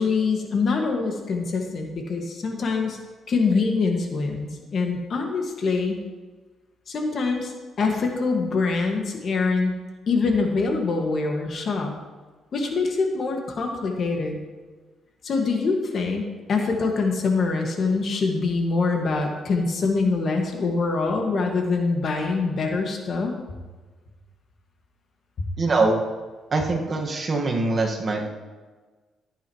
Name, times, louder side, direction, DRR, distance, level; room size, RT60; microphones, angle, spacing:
voice 1, 0.0-3.0 3.3-6.0 6.9-7.5 7.8-9.7 10.1-11.9 12.5-14.4 15.2-23.3, left 4 dB, 55° left, 2 dB, 2.0 m, -24 dB
voice 2, 25.6-26.0 26.5-28.3, right 3 dB, 40° right, 1 dB, 1.8 m, -23 dB
14.5 x 8.9 x 3.2 m, 1.3 s
cardioid pair, 90°, 0 cm